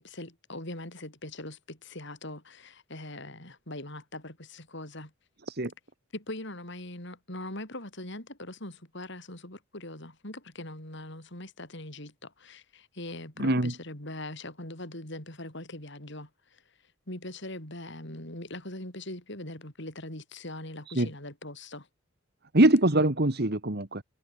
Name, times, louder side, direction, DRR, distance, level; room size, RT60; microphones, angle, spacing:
voice 1, 0.0-5.1 6.1-16.6 17.1-21.9, left 1 dB, 60° left, 7.8 m, -41 dB
voice 2, 13.4-13.7 20.9-21.1 22.5-24.0, right 1 dB, 50° right, 1.9 m, -23 dB
head